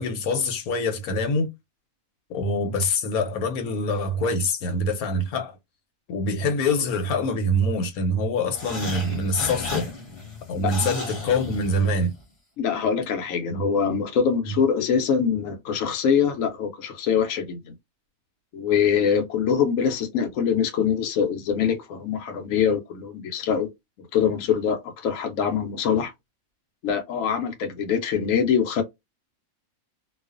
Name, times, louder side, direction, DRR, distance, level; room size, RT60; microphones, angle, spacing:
voice 1, 0.0-1.5 2.3-5.6 6.1-9.9 10.5-12.1 13.5-13.6 14.4-14.6, left 1 dB, 90° left, 1.2 m, -25 dB
sound 1, 8.5-12.2, left 3 dB, 25° left, 1.0 m, -34 dB
voice 2, 12.6-17.7 18.5-23.7 24.1-26.1 26.8-28.8, left 7 dB, 70° left, 1.0 m, -24 dB
2.4 x 2.3 x 2.4 m
omnidirectional pair, 1.5 m